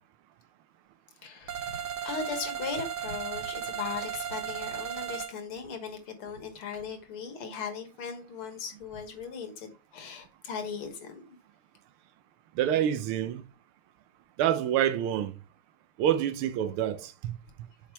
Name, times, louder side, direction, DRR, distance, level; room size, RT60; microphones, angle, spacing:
voice 1, 1.2-11.2, left 6 dB, 80° left, 2.4 m, -38 dB
sound 1, 1.5-5.3, right 9 dB, 65° right, 1.2 m, -35 dB
voice 2, 12.6-13.4 14.4-15.4 16.0-17.4, right 10 dB, 85° right, 1.6 m, -27 dB
7.3 x 5.0 x 4.6 m
omnidirectional pair, 2.3 m